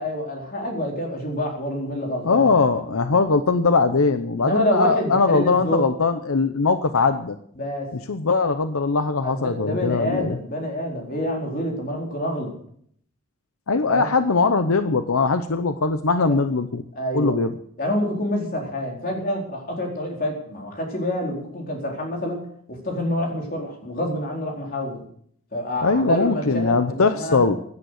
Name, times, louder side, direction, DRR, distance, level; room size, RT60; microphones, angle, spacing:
voice 1, 0.0-2.5 4.4-5.9 7.6-7.9 9.2-12.5 13.9-14.1 16.3-16.4 17.0-17.4 17.8-22.4 22.7-25.0 25.5-27.5, equal, 45° left, 0 dB, 4.3 m, -27 dB
voice 2, 2.2-7.4 8.1-10.4 13.7-16.8 17.1-17.5 25.8-27.6, left 4 dB, 80° left, 10 dB, 0.8 m, -21 dB
16.5 x 11.0 x 6.5 m, 0.65 s
head